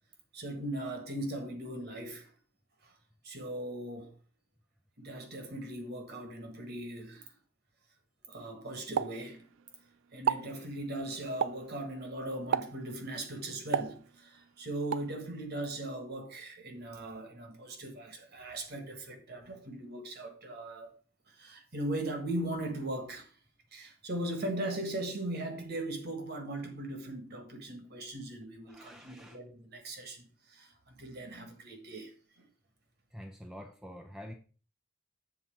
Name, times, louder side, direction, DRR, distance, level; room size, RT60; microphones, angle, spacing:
voice 1, 0.3-2.3 2.8-2.9 3.2-4.1 5.0-7.3 8.3-9.5 10.1-20.9 21.3-23.3 23.7-32.1, right 1 dB, 50° right, 1.5 m, -39 dB
Explosion, 9.0-9.8 10.1-10.6 11.4-11.8 12.5-12.9 13.7-14.4 14.9-15.2, right 7 dB, 65° right, 0.4 m, -32 dB
voice 2, 28.7-29.4 33.1-34.3, equal, ahead, 0.5 m, -47 dB
7.5 x 4.1 x 5.7 m
head